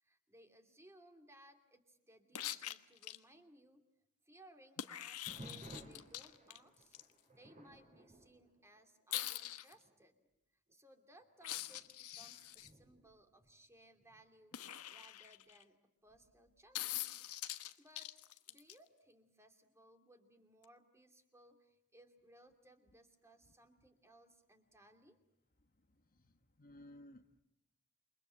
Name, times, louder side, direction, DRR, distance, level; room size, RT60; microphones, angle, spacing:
voice 1, 0.0-3.8 4.2-7.0 7.3-10.1 10.7-17.1 17.5-25.2, right 1 dB, 10° right, 6 dB, 2.6 m, -64 dB
sound 1, 2.3-3.2 4.8-7.0 9.1-9.7 11.4-12.7 14.5-15.6 16.7-18.7 20.6-20.7, left 13 dB, 85° left, 1.2 m, -44 dB
sound 2, 5.3-9.4 9.7-10.1 10.7-10.8 11.5-14.2 16.1-16.6, right 1 dB, 30° right, 5.7 m, -57 dB
voice 2, 25.6-27.4, left 1 dB, 40° left, 7 dB, 1.2 m, -59 dB
28.5 x 23.5 x 7.7 m, 0.84 s
head